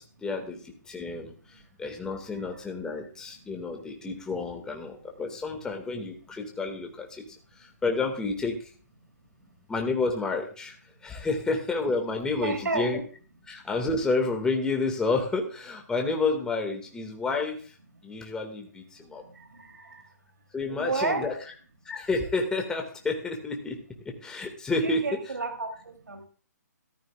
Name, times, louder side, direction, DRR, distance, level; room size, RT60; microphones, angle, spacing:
voice 1, 0.0-7.2 7.6-8.6 9.7-10.7 11.0-13.0 13.5-17.7 18.0-19.2 20.5-21.3 21.9-23.8 24.2-25.0, left 3 dB, 5° left, 2 dB, 2.0 m, -30 dB
voice 2, 12.4-12.9 19.2-20.1 20.7-21.4 24.8-26.3, right 3 dB, 85° right, 5 dB, 3.1 m, -32 dB
14.0 x 14.0 x 2.4 m, 0.41 s
hypercardioid pair, 145°, 10 cm